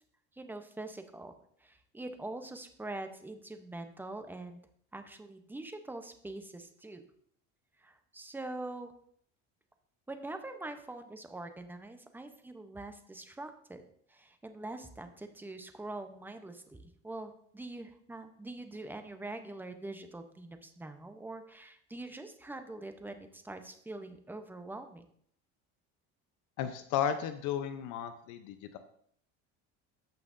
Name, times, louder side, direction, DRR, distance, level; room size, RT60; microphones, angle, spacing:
voice 1, 0.3-1.3 1.6-4.6 4.9-7.0 7.8-8.9 10.1-13.8 14.1-25.0, right 2 dB, 5° right, 7 dB, 0.7 m, -44 dB
voice 2, 26.6-28.8, left 9 dB, 65° left, 9 dB, 0.7 m, -34 dB
14.5 x 5.7 x 2.6 m, 0.64 s
cardioid pair, 135°, 33 cm